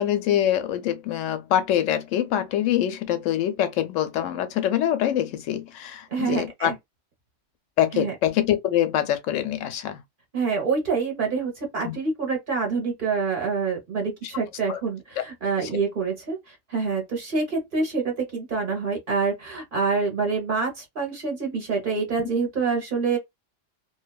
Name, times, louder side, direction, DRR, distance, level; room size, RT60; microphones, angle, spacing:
voice 1, 0.0-6.7 7.8-10.0 11.8-12.0 14.7-14.8 15.6-15.7 22.2-22.3, left 11 dB, 85° left, 1.0 m, -24 dB
voice 2, 6.1-6.7 7.9-8.1 10.3-23.2, right 4 dB, 45° right, 1.1 m, -26 dB
2.6 x 2.3 x 2.2 m
omnidirectional pair, 1.3 m